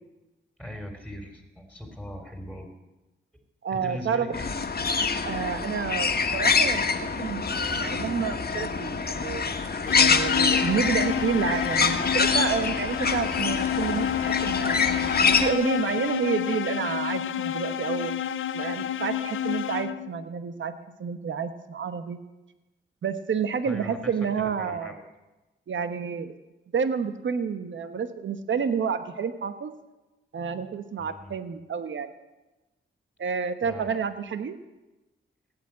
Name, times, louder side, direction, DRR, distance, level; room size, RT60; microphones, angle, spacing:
voice 1, 0.6-2.7 3.7-4.5 23.6-24.1 24.6-25.0 31.0-31.3 33.6-34.0, left 1 dB, 5° right, 3 dB, 3.4 m, -39 dB
voice 2, 3.6-4.3 5.2-9.4 9.9-18.1 18.5-20.7 21.0-22.2 23.0-25.0 25.7-26.3 26.7-29.7 30.3-32.1 33.2-34.6, right 6 dB, 65° right, 10 dB, 1.2 m, -29 dB
sound 1, 4.3-15.5, left 5 dB, 50° left, 1.6 m, -25 dB
sound 2, 9.9-20.2, left 10 dB, 70° left, 0.6 m, -29 dB
17.5 x 9.1 x 8.7 m, 1.1 s
cardioid pair, 55°, 21 cm